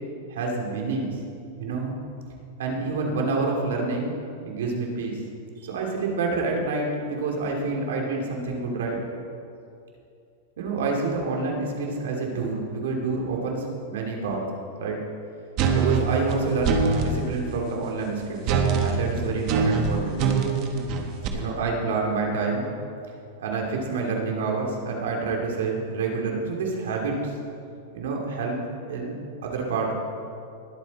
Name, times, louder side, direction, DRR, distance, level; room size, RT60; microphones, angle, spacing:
voice 1, 0.3-1.2 1.6-1.9 2.6-4.1 4.4-5.2 5.6-9.0 10.6-14.4 14.8-15.0 15.7-18.4 18.8-20.2 21.3-22.7 23.4-27.3 27.9-28.6 28.9-29.1 29.4-29.9, right 3 dB, 80° right, 0 dB, 2.8 m, -28 dB
sound 1, 15.6-17.2 18.5-21.3, right 5 dB, 35° right, 1.2 m, -23 dB
21.0 x 8.0 x 4.3 m, 2.5 s
supercardioid pair, 160°, 0 cm